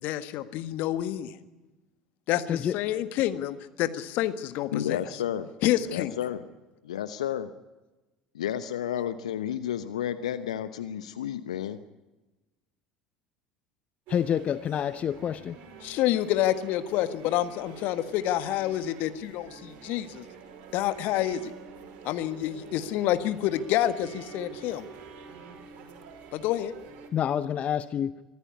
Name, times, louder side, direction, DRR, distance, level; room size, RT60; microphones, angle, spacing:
voice 1, 0.0-1.3 2.3-5.0 5.6-6.1 15.8-20.2 20.7-21.5 22.0-24.9 26.3-26.7, left 13 dB, 55° left, 11 dB, 1.6 m, -28 dB
voice 2, 2.5-2.8 14.1-15.6 27.1-28.2, left 9 dB, 40° left, 14 dB, 0.8 m, -28 dB
voice 3, 4.7-5.5 5.9-6.4 6.8-7.5 8.3-11.8, left 10 dB, 75° left, 13 dB, 0.9 m, -31 dB
sound 1, 14.1-27.1, right 6 dB, 50° right, 5.2 m, -47 dB
24.0 x 14.5 x 9.6 m, 1.1 s
figure-of-eight pair, 70°, 4 cm